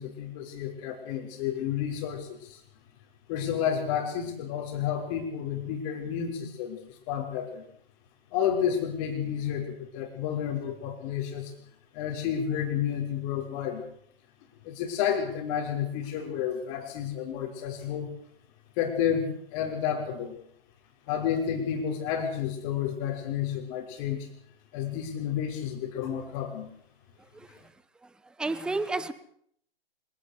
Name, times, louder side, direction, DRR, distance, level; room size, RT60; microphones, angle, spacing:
voice 1, 0.0-2.6 3.3-7.6 8.3-11.5 11.9-13.8 14.6-18.1 18.8-20.3 21.1-24.3 24.7-26.7, left 8 dB, 30° left, 5.8 m, -31 dB
voice 2, 27.3-27.7 28.0-29.1, right 3 dB, 5° right, 0.9 m, -32 dB
25.5 x 17.5 x 6.8 m
figure-of-eight pair, 125°, 30 cm